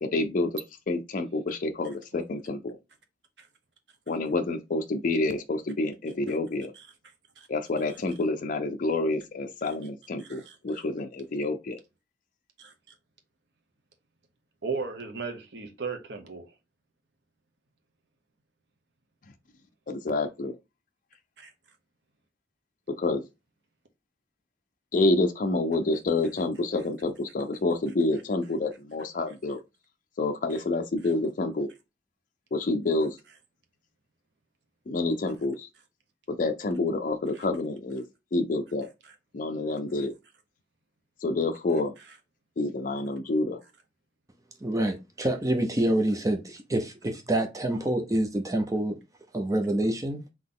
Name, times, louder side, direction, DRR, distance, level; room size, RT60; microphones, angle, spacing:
voice 1, 0.0-0.5 0.9-2.8 4.1-6.7 7.5-11.8 19.9-20.6 23.0-23.2 24.9-29.6 30.2-31.7 32.5-33.2 34.9-35.7 36.3-38.0 38.3-38.9 39.3-40.1 41.2-41.9 42.6-43.6, left 2 dB, 50° left, 0.5 m, -28 dB
voice 2, 10.2-10.8 12.6-12.7 14.6-16.5 21.4-21.5 30.5-30.6 31.0-31.1 37.3-37.4 39.0-39.1 42.1-42.2, right 4 dB, 70° right, 0.9 m, -37 dB
voice 3, 44.6-49.0 49.3-50.2, right 1 dB, 20° right, 0.6 m, -27 dB
3.9 x 3.0 x 3.7 m
head